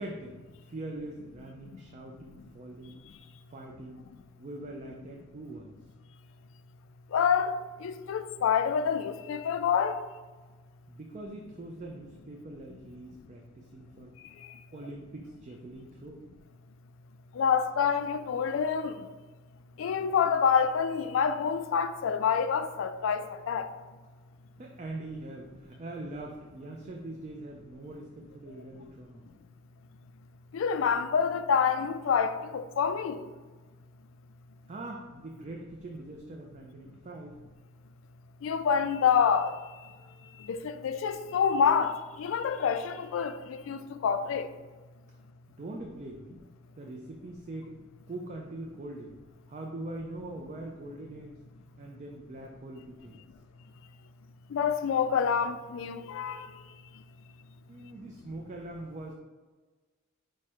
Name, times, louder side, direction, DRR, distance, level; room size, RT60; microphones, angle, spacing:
voice 1, 0.0-3.0 3.5-4.0 4.4-5.7 10.9-14.2 14.7-16.2 24.6-29.3 34.7-37.4 45.6-46.4 46.8-47.8 48.1-49.2 49.5-51.4 51.8-53.2 57.7-59.1, right 2 dB, 35° right, 0.4 m, -42 dB
voice 2, 7.1-7.5 7.8-9.9 17.4-19.0 19.8-23.7 30.5-33.2 38.4-39.5 40.5-44.5 54.5-56.5, left 7 dB, 65° left, 0.3 m, -27 dB
4.7 x 2.1 x 4.3 m
head